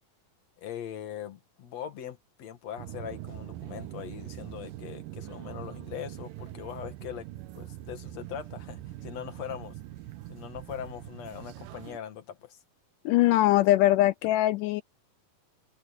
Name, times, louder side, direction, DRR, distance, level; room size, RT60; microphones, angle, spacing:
voice 1, 0.6-7.3 7.5-9.8 10.3-12.6, left 9 dB, 50° left, 2.8 m, -41 dB
sound 1, 2.8-12.0, right 15 dB, 75° right, 2.4 m, -42 dB
voice 2, 13.1-14.8, left 15 dB, 85° left, 1.8 m, -22 dB
omnidirectional pair, 4.2 m